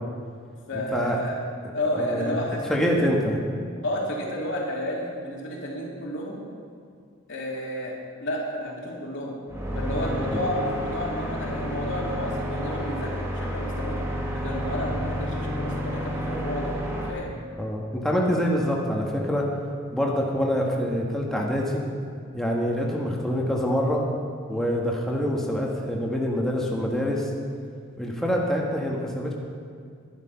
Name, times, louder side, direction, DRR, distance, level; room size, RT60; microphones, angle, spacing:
voice 1, 0.7-1.4 1.7-3.1 3.8-6.4 7.3-7.9 8.2-9.4 9.7-14.0 14.3-16.8 17.1-17.3, left 1 dB, 60° left, -3 dB, 2.8 m, -31 dB
voice 2, 2.0-2.4 2.7-3.4 10.3-10.4 14.8-15.0 17.6-19.5 19.9-21.8 22.3-24.0 24.5-27.3 28.0-29.3, equal, ahead, -2 dB, 1.5 m, -25 dB
sound 1, 9.5-17.1, equal, 15° right, 1.5 m, -30 dB
11.5 x 11.0 x 5.6 m, 2.2 s
head